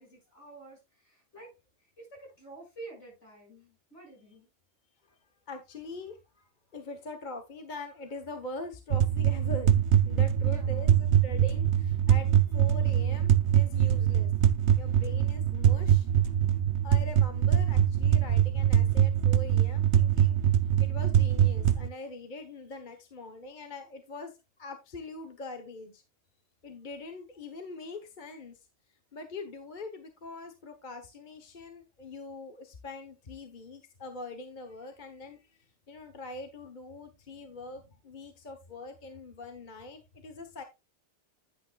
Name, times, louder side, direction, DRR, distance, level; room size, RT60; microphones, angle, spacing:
voice 1, 0.0-1.5 2.0-4.5 10.4-10.9, right 3 dB, 70° left, 6.7 m, -49 dB
voice 2, 5.5-9.7 10.0-14.3 14.8-16.1 16.8-20.4 20.8-26.0 26.6-28.7 29.1-40.6, left 2 dB, 45° left, 1.2 m, -43 dB
sound 1, 8.9-21.9, right 10 dB, 70° right, 1.0 m, -23 dB
10.5 x 8.8 x 2.3 m
omnidirectional pair, 1.2 m